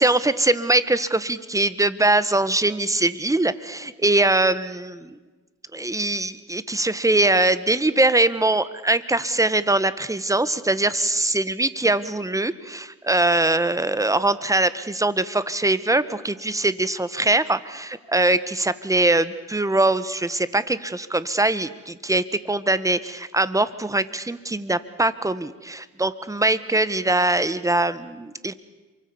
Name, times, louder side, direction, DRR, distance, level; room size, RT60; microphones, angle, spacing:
voice 1, 0.0-5.0 5.7-28.5, right 2 dB, 10° right, 15 dB, 1.4 m, -22 dB
27.5 x 24.5 x 7.2 m, 1.2 s
cardioid pair, 90°, 30 cm